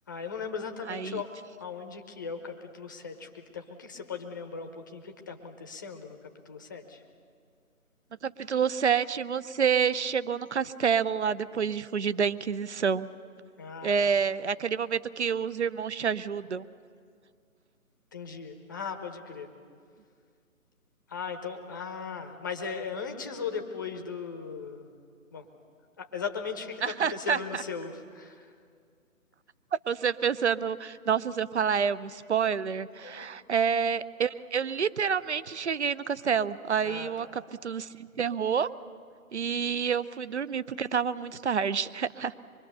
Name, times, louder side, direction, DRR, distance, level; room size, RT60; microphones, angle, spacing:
voice 1, 0.1-1.3 1.6-7.0 13.6-14.1 18.1-19.5 21.1-24.9 25.3-25.5 26.0-28.5 33.0-33.3 36.8-37.3, left 5 dB, 15° left, 5 dB, 0.9 m, -38 dB
voice 2, 0.9-1.2 8.2-13.1 13.8-16.6 26.8-27.6 29.9-38.7 39.3-42.3, right 7 dB, 50° right, 16 dB, 0.8 m, -28 dB
25.0 x 23.5 x 6.7 m, 2.2 s
figure-of-eight pair, 150°, 44 cm